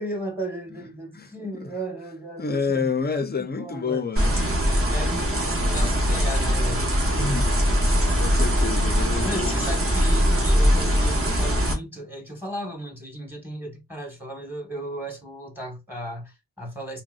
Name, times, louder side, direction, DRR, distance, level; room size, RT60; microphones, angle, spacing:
voice 1, 0.0-2.9 3.4-4.1 4.9-6.9 9.2-17.0, right 1 dB, 5° right, 1.1 m, -35 dB
voice 2, 1.1-1.7 2.4-4.3 7.2-7.8 8.1-9.6, left 4 dB, 25° left, 0.5 m, -29 dB
sound 1, 4.2-11.7, equal, 30° right, 1.0 m, -21 dB
3.7 x 2.2 x 2.3 m
wide cardioid pair, 75°, 44 cm